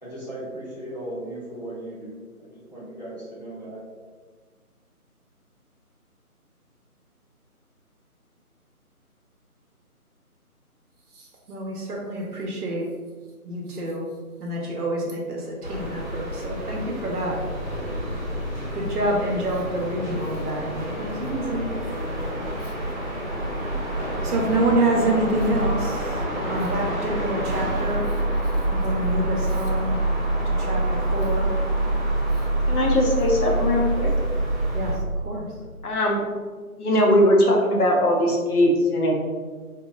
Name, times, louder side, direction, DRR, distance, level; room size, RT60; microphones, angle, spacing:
voice 1, 0.0-3.8, right 1 dB, 30° left, -10 dB, 0.7 m, -37 dB
voice 2, 11.1-12.9 13.4-14.0 14.4-17.5 18.7-21.7 22.6-22.7 24.2-28.2 28.7-30.0 30.4-31.5 32.3-32.4 34.7-35.6, right 1 dB, 80° right, -2 dB, 0.7 m, -27 dB
sound 1, 15.6-35.0, right 1 dB, 35° right, 0.7 m, -26 dB
voice 3, 32.7-34.1 35.8-36.2 36.8-39.1, left 1 dB, 80° left, 0 dB, 0.7 m, -20 dB
2.8 x 2.1 x 2.3 m, 1.5 s
figure-of-eight pair, 165°, 45 cm